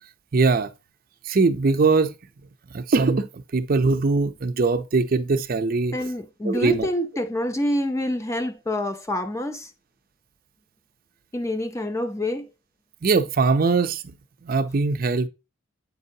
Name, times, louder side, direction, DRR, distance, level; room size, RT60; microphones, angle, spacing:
voice 1, 0.3-0.7 1.2-2.1 2.7-6.0 6.4-6.9 13.0-14.0 14.4-15.3, right 4 dB, 45° right, 0.5 m, -21 dB
voice 2, 5.9-9.7 11.3-12.5, left 1 dB, 15° left, 0.4 m, -27 dB
8.1 x 5.4 x 2.7 m
head